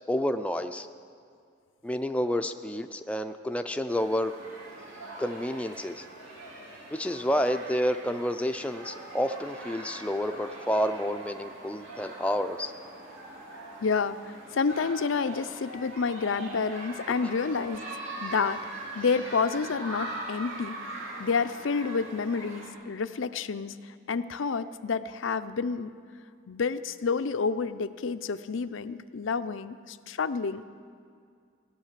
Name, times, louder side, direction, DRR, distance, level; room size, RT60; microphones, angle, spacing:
voice 1, 0.1-0.9 1.8-4.3 5.2-6.0 6.9-12.7, equal, 5° left, 7 dB, 0.4 m, -29 dB
sound 1, 3.9-22.7, right 2 dB, 80° right, 3.2 m, -42 dB
voice 2, 13.8-17.8 18.2-20.8 21.2-25.9 26.5-30.6, left 5 dB, 85° left, 11 dB, 0.5 m, -29 dB
16.0 x 10.5 x 7.5 m, 2.2 s
head